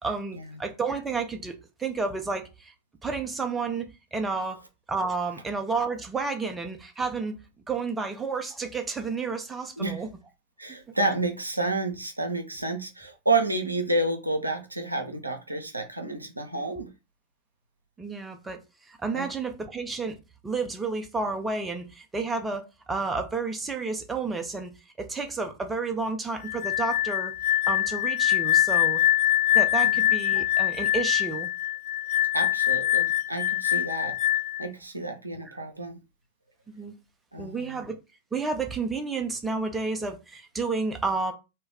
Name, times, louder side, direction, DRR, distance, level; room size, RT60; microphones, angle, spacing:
voice 1, 0.0-2.7 3.0-4.6 4.9-7.3 7.7-10.1 10.9-11.0 18.0-18.6 18.9-20.2 20.4-24.7 25.0-27.3 27.7-29.0 29.5-31.5 35.4-35.6 36.7-36.9 37.4-38.0 38.3-41.3, right 4 dB, 15° right, 0.5 m, -31 dB
voice 2, 10.6-16.9 19.1-19.3 29.8-29.9 32.3-34.1 34.6-36.0 37.3-37.8, right 2 dB, 85° right, 0.5 m, -30 dB
sound 1, 26.4-34.7, left 13 dB, 45° left, 0.7 m, -24 dB
2.2 x 2.1 x 3.4 m
figure-of-eight pair, 90°, 0 cm